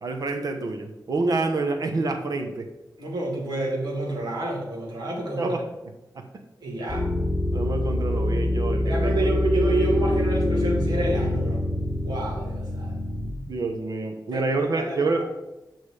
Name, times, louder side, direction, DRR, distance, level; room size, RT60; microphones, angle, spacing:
voice 1, 0.0-2.7 5.4-5.6 6.1-6.2 7.5-9.2 13.5-15.2, right 3 dB, 55° right, 5 dB, 1.0 m, -27 dB
voice 2, 3.0-5.5 6.6-7.1 8.8-11.6 12.0-13.0 14.3-15.2, right 2 dB, 70° right, -2 dB, 2.5 m, -29 dB
sound 1, 6.9-13.3, left 1 dB, 5° right, 3.7 m, -25 dB
8.9 x 6.2 x 4.9 m, 0.97 s
wide cardioid pair, 145°, 7 cm